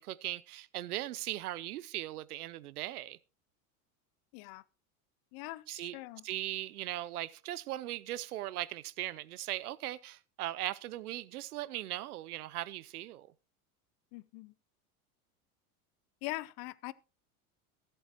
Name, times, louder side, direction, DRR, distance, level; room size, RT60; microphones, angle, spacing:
voice 1, 0.0-3.2 5.7-6.0 6.2-13.3, right 15 dB, 85° right, 0.7 m, -39 dB
voice 2, 4.3-4.6 5.3-6.2 14.1-14.5 16.2-16.9, left 21 dB, 55° left, 0.8 m, -42 dB
22.5 x 7.9 x 3.0 m
hypercardioid pair, 95°, 44 cm